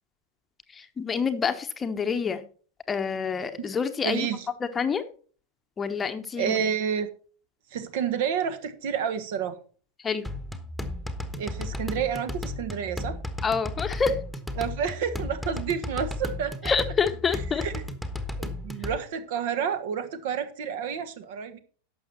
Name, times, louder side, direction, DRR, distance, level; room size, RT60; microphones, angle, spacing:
voice 1, 0.7-2.4 2.9-4.3 4.6-5.0 5.8-6.6 10.0-10.2 13.4-14.2 16.6-17.6, left 5 dB, 20° left, 8 dB, 1.0 m, -27 dB
voice 2, 4.0-4.5 6.4-7.1 7.7-9.6 11.3-13.2 14.6-16.7 17.6-17.8 18.4-21.6, right 7 dB, 50° right, 10 dB, 1.3 m, -29 dB
sound 1, 10.2-19.0, left 1 dB, ahead, 1.3 m, -34 dB
11.5 x 7.3 x 4.3 m, 0.41 s
figure-of-eight pair, 90°, 0 cm